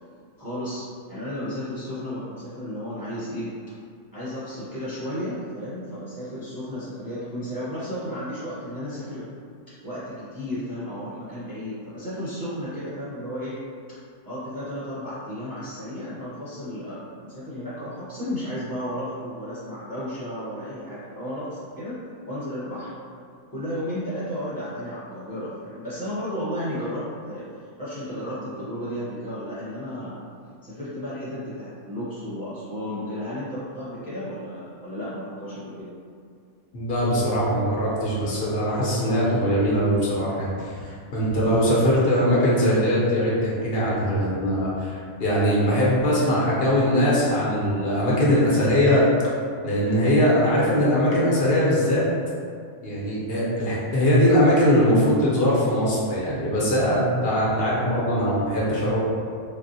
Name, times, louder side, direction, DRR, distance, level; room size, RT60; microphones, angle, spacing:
voice 1, 0.4-3.5 4.1-9.3 9.8-13.6 14.2-22.0 22.3-22.9 23.5-27.4 27.8-30.2 30.6-35.9, equal, 20° right, -13 dB, 0.6 m, -33 dB
voice 2, 36.7-44.9 45.2-49.0 49.6-52.0 52.8-59.0, equal, 55° left, -6 dB, 0.9 m, -21 dB
3.8 x 2.0 x 2.7 m, 2.3 s
omnidirectional pair, 1.3 m